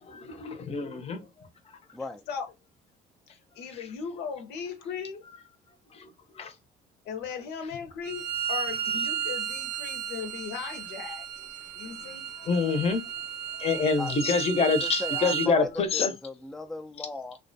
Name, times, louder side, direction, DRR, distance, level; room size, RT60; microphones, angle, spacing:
voice 1, 0.1-1.2 3.7-3.8 6.0-6.1 6.4-6.5 12.4-13.0 13.6-16.1, left 4 dB, 35° left, 0.6 m, -26 dB
voice 2, 1.9-2.2 14.0-14.1 14.6-17.4, left 2 dB, ahead, 0.3 m, -37 dB
voice 3, 3.6-5.3 7.1-11.3 11.7-12.3, left 6 dB, 80° left, 0.7 m, -37 dB
Bowed string instrument, 8.0-15.5, right 9 dB, 80° right, 0.4 m, -33 dB
2.3 x 2.1 x 2.6 m
cardioid pair, 110°, 17 cm